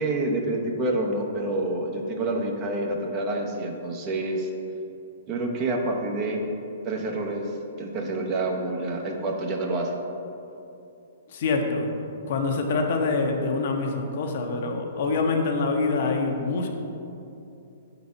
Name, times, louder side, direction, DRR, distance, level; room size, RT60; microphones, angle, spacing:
voice 1, 0.0-4.5 5.3-6.4 6.8-9.9, right 2 dB, 35° right, 1 dB, 0.7 m, -28 dB
voice 2, 11.3-11.9 12.3-16.7, left 3 dB, 60° left, 3 dB, 0.7 m, -25 dB
4.7 x 4.0 x 5.3 m, 2.7 s
hypercardioid pair, 135°, 0 cm